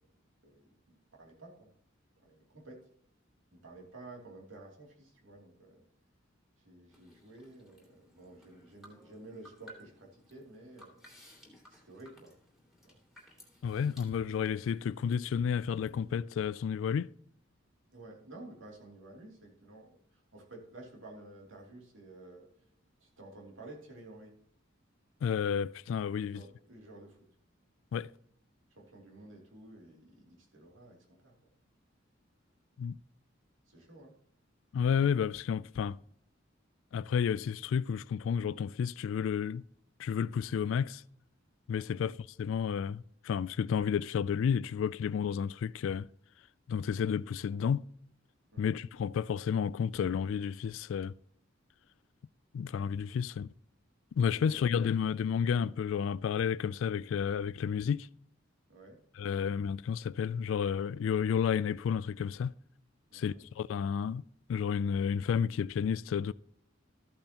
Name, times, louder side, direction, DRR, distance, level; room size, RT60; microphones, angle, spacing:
voice 1, 0.4-1.7 2.2-2.9 3.5-5.8 6.6-11.1 11.7-12.4 12.8-13.0 17.9-22.5 23.0-24.4 26.2-27.2 28.7-31.3 33.7-34.2 41.9-42.2 48.5-48.8 54.2-54.8 58.7-59.0 63.1-63.4, right 2 dB, 80° right, 2.8 m, -52 dB
sound 1, 6.9-16.2, equal, ahead, 2.7 m, -59 dB
voice 2, 13.6-17.1 25.2-26.4 27.9-28.1 32.8-33.0 34.7-36.0 36.9-39.6 40.0-41.0 41.7-42.1 42.4-46.1 46.7-47.9 48.6-51.1 52.5-53.5 54.2-58.1 59.2-62.5 63.1-64.2 64.5-66.3, left 7 dB, 75° left, 0.3 m, -31 dB
14.0 x 8.7 x 2.9 m
head